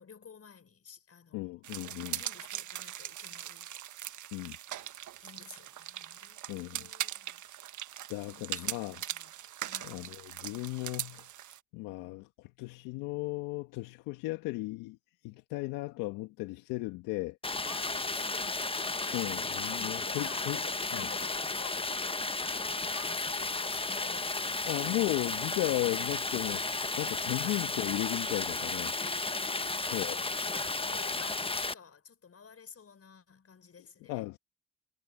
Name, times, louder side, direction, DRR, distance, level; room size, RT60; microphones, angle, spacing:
voice 1, 0.0-1.6 2.1-3.7 5.2-7.4 8.3-9.3 9.7-10.1 17.6-19.3 19.6-25.0 27.4-27.6 28.9-34.2, left 6 dB, 45° left, 5.0 m, -51 dB
voice 2, 1.3-2.2 4.3-4.6 6.5-6.9 8.1-9.0 9.8-11.3 11.7-15.0 15.2-17.4 19.1-20.6 20.9-21.1 24.6-26.6 27.0-28.9 29.9-30.2 34.1-34.4, left 21 dB, 80° left, 1.6 m, -35 dB
sound 1, 1.6-11.6, right 12 dB, 65° right, 1.5 m, -41 dB
Stream, 17.4-31.7, left 3 dB, 15° left, 1.3 m, -33 dB
hypercardioid pair, 45°, 32 cm